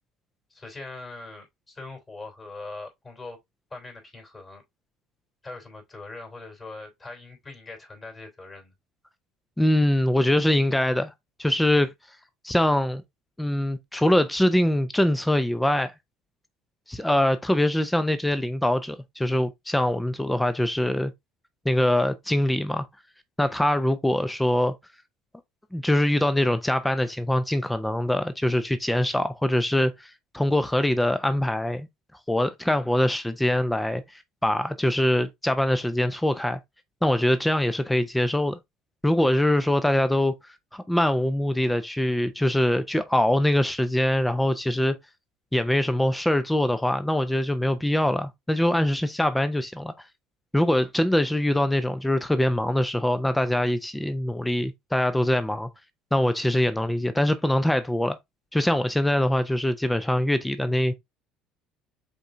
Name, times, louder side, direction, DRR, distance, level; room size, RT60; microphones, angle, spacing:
voice 1, 0.5-3.4 3.7-4.6 5.4-8.7 23.4-23.6, left 3 dB, 25° left, 3.0 m, -41 dB
voice 2, 9.6-11.1 11.4-11.9 12.4-13.0 13.4-15.9 16.9-21.1 21.6-22.8 23.4-24.7 25.7-31.9 32.3-34.0 34.4-36.6 37.0-38.6 39.0-40.3 40.7-45.0 45.5-49.9 50.5-55.7 56.1-58.2 58.5-61.0, left 1 dB, 5° left, 0.6 m, -23 dB
5.2 x 3.8 x 2.6 m
supercardioid pair, 85°, 0 cm